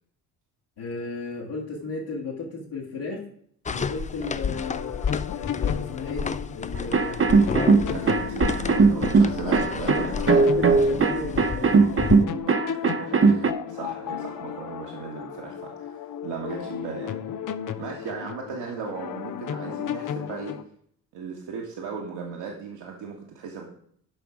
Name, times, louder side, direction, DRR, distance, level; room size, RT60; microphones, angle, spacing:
voice 1, 0.8-3.2 3.7-7.3 9.4-9.6 9.9-11.9, left 3 dB, 60° left, -6 dB, 2.5 m, -34 dB
sound 1, 3.7-12.2, left 6 dB, 15° left, 0.4 m, -31 dB
sound 2, 4.5-20.6, left 8 dB, 40° left, 0.8 m, -34 dB
sound 3, 6.9-13.5, right 4 dB, 25° right, 0.9 m, -19 dB
voice 2, 7.9-10.5 12.7-17.1 17.8-20.6 21.1-23.6, right 5 dB, 60° right, -1 dB, 1.7 m, -37 dB
11.0 x 5.7 x 5.0 m, 0.64 s
hypercardioid pair, 45°, 47 cm